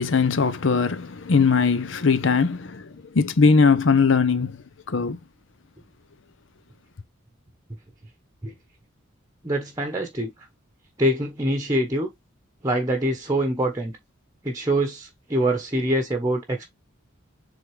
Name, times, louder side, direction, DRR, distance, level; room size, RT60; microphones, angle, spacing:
voice 1, 0.0-5.2, left 5 dB, 65° left, 0.6 m, -20 dB
voice 2, 9.4-10.3 11.0-12.1 12.6-14.0 14.4-16.7, right 1 dB, 15° right, 1.0 m, -24 dB
7.9 x 3.6 x 3.3 m
head